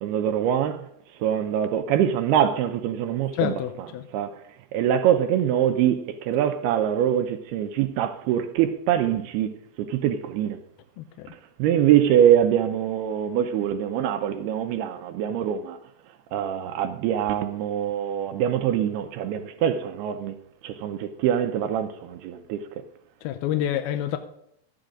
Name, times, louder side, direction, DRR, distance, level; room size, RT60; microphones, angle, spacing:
voice 1, 0.0-0.8 1.2-3.6 4.1-4.3 4.7-9.5 9.9-10.6 11.6-15.8 16.3-20.3 20.6-22.6, right 10 dB, 80° right, 2.5 m, -23 dB
voice 2, 3.3-4.1 11.0-11.3 23.2-24.2, left 11 dB, 80° left, 2.4 m, -28 dB
13.0 x 10.5 x 3.7 m
omnidirectional pair, 4.8 m